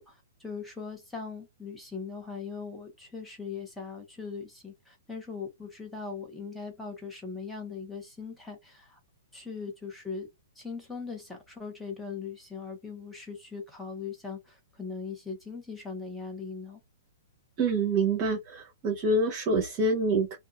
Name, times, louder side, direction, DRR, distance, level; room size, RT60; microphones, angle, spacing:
voice 1, 0.0-9.0 9.3-10.3 10.5-16.8, left 5 dB, 5° left, 1.1 m, -40 dB
voice 2, 17.6-20.4, right 2 dB, 35° right, 1.0 m, -26 dB
2.6 x 2.4 x 2.4 m
hypercardioid pair, 140°, 0 cm